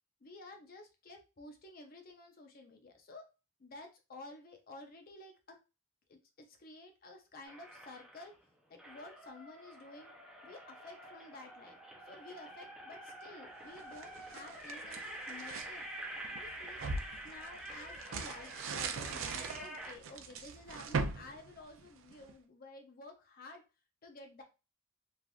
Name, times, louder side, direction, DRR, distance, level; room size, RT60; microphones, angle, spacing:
voice 1, 0.2-3.3 3.6-5.6 6.1-8.3 8.7-10.1 10.4-11.8 12.1-15.9 16.3-16.9 17.2-23.6 24.0-24.4, left 2 dB, 45° left, 4 dB, 0.6 m, -52 dB
sound 1, 7.4-8.4 8.8-20.0, right 1 dB, 5° right, 0.5 m, -47 dB
sound 2, 13.8-15.7 16.2-22.3, right 4 dB, 70° right, 0.4 m, -40 dB
3.3 x 2.4 x 2.3 m, 0.30 s
head